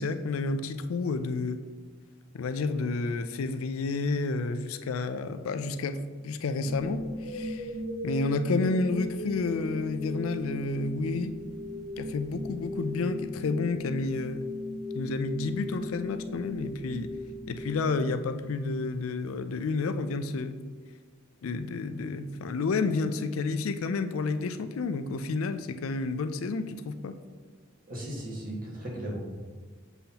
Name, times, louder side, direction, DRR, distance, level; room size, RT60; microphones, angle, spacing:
voice 1, 0.0-1.6 2.3-7.7 8.0-11.3 12.0-14.5 14.9-17.1 17.5-20.6 21.4-27.1, left 3 dB, 70° left, 10 dB, 0.4 m, -30 dB
sound 1, 6.6-18.7, left 1 dB, 75° right, 1.4 m, -37 dB
voice 2, 27.9-29.2, right 1 dB, 45° right, -4 dB, 1.7 m, -36 dB
6.9 x 5.5 x 2.9 m, 1.5 s
head